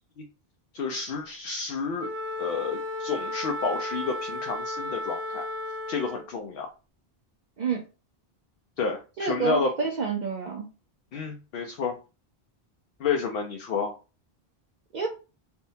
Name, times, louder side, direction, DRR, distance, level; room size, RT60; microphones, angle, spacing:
voice 1, 0.7-2.1 2.4-5.5 5.9-6.7 8.8-9.7 11.1-11.9 13.0-14.0, left 5 dB, 70° left, 3 dB, 0.8 m, -30 dB
Wind instrument woodwind instrument, 2.0-6.4, left 1 dB, 85° right, 0.8 m, -34 dB
voice 2, 9.2-10.6 14.9-15.1, right 6 dB, 55° right, 0 dB, 0.6 m, -28 dB
3.5 x 2.2 x 2.6 m, 0.32 s
omnidirectional pair, 1.0 m